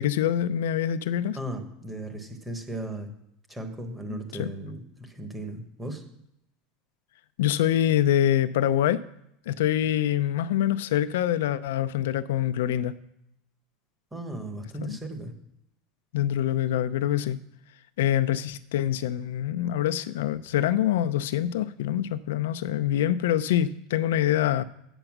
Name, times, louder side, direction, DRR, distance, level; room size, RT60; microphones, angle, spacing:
voice 1, 0.0-1.4 4.1-4.5 7.4-9.0 9.5-13.0 14.8-15.0 16.1-17.4 18.0-24.6, left 11 dB, 90° left, 13 dB, 0.6 m, -25 dB
voice 2, 1.3-3.1 3.5-6.0 14.1-15.3, right 1 dB, 5° right, 6 dB, 1.1 m, -36 dB
8.9 x 8.0 x 6.0 m, 0.80 s
supercardioid pair, 180°, 0 cm